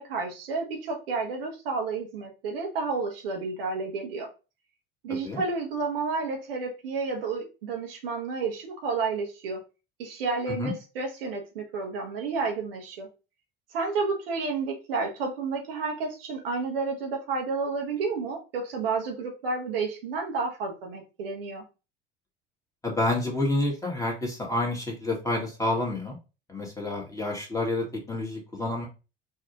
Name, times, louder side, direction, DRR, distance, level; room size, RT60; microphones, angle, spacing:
voice 1, 0.0-4.3 5.0-9.6 10.0-13.1 13.7-21.6, right 4 dB, 75° right, 1 dB, 0.9 m, -31 dB
voice 2, 22.8-26.2 26.5-28.9, left 2 dB, 10° left, -1 dB, 1.4 m, -29 dB
3.4 x 2.4 x 2.8 m, 0.31 s
hypercardioid pair, 70°, 29 cm